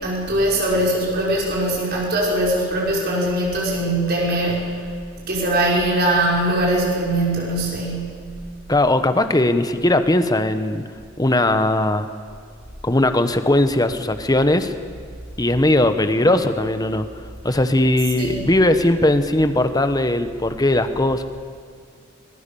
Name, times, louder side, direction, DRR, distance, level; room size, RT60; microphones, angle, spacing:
voice 1, 0.0-4.8 5.3-8.2 18.2-18.5, right 1 dB, 55° right, -3 dB, 5.9 m, -21 dB
voice 2, 8.7-10.8 11.2-12.1 12.8-14.7 15.4-17.1 17.4-21.3, left 1 dB, 20° left, 10 dB, 1.1 m, -19 dB
24.0 x 20.5 x 7.0 m, 2.1 s
head